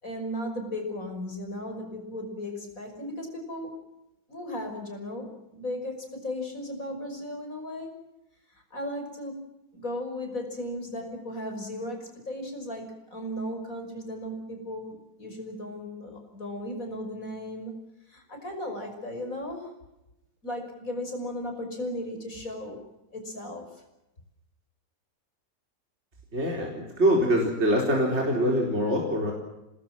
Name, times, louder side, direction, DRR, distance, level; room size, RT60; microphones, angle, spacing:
voice 1, 0.0-3.9 4.3-7.9 8.5-17.8 18.1-19.7 20.4-22.8 23.1-23.7, left 1 dB, 45° left, 4 dB, 6.2 m, -36 dB
voice 2, 26.3-29.3, equal, 35° right, 0 dB, 4.7 m, -24 dB
26.5 x 20.5 x 7.6 m, 0.94 s
omnidirectional pair, 2.0 m